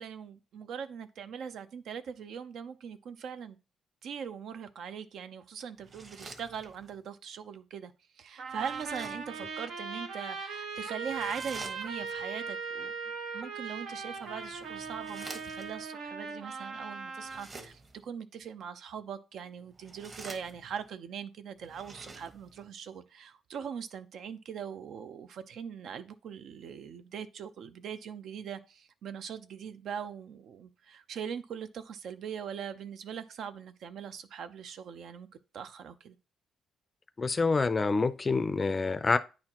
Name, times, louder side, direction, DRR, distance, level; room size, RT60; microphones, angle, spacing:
voice 1, 0.0-3.6 4.0-12.9 13.3-35.3 35.5-36.2, right 7 dB, 65° right, 0.6 m, -41 dB
sound 1, 5.8-7.0 8.5-9.4 11.0-12.2 14.0-15.8 17.2-18.0 19.7-20.9 21.6-22.7, right 3 dB, 35° right, 1.3 m, -49 dB
Trumpet, 8.4-17.4, right 5 dB, 85° right, 1.1 m, -39 dB
voice 2, 37.2-39.2, left 4 dB, 25° left, 0.4 m, -27 dB
9.7 x 4.2 x 2.9 m
cardioid pair, 130°, 0 cm